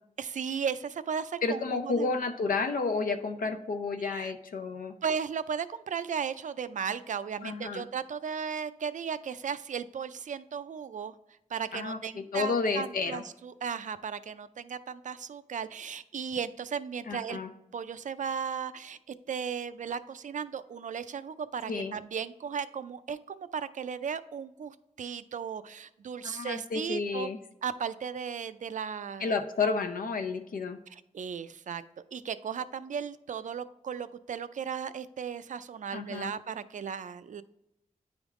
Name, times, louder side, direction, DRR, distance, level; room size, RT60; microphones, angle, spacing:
voice 1, 0.2-2.2 4.1-4.3 5.0-11.1 11.5-17.4 17.7-27.3 27.6-29.4 30.9-31.8 32.1-37.4, right 7 dB, 60° right, 13 dB, 0.4 m, -36 dB
voice 2, 1.4-4.9 7.4-7.8 11.7-13.2 17.1-17.5 21.7-21.9 26.2-27.4 29.2-30.8 35.9-36.3, left 4 dB, 90° left, 8 dB, 0.6 m, -31 dB
9.6 x 3.5 x 3.6 m, 0.86 s
wide cardioid pair, 95°, 14 cm